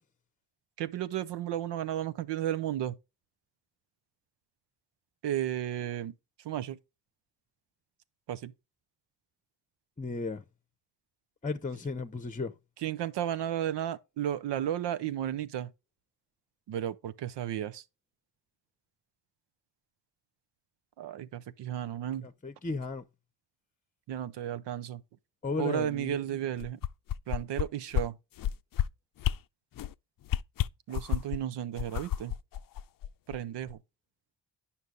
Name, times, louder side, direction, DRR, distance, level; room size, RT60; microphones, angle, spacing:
voice 1, 0.8-2.9 5.2-6.1 6.4-6.8 8.3-8.5 12.8-15.7 16.7-17.8 21.0-22.3 24.1-25.0 25.6-26.8 27.3-28.2 30.9-32.3 33.3-33.8, right 11 dB, 75° right, 0.7 m, -33 dB
voice 2, 10.0-10.4 11.4-12.5 22.2-23.0 25.4-26.4, left 4 dB, 20° left, 0.8 m, -35 dB
sound 1, 26.6-27.6 27.9-28.1 28.4-28.8 29.2-29.4 29.7-29.9 30.3-31.4 31.8-33.4 33.7-33.8, left 12 dB, 55° left, 0.5 m, -30 dB
9.3 x 5.7 x 3.8 m
supercardioid pair, 45°, 42 cm